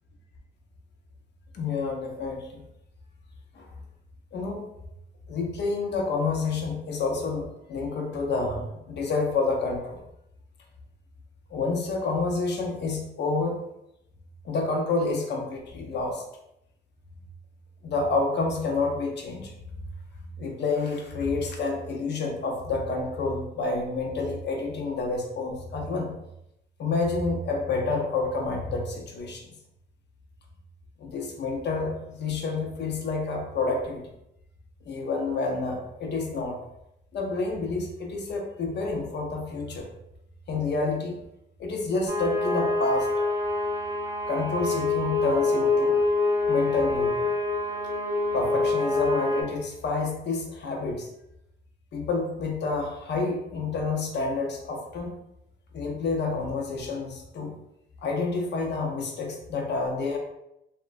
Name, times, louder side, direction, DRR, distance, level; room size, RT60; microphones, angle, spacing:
voice 1, 1.5-2.6 3.5-3.7 4.3-4.7 5.3-10.0 11.5-13.6 14.4-16.2 17.8-19.6 20.4-26.1 26.8-29.4 31.0-34.1 34.9-36.6 37.1-39.9 40.5-41.2 41.6-43.2 44.3-46.0 46.4-47.3 48.3-51.1 51.9-55.1 55.7-57.5 58.0-60.2, left 3 dB, 60° left, 1 dB, 0.7 m, -29 dB
sound 1, 42.1-49.4, left 3 dB, 75° right, 0.7 m, -25 dB
2.8 x 2.2 x 2.4 m, 0.83 s
cardioid pair, 90°, 20 cm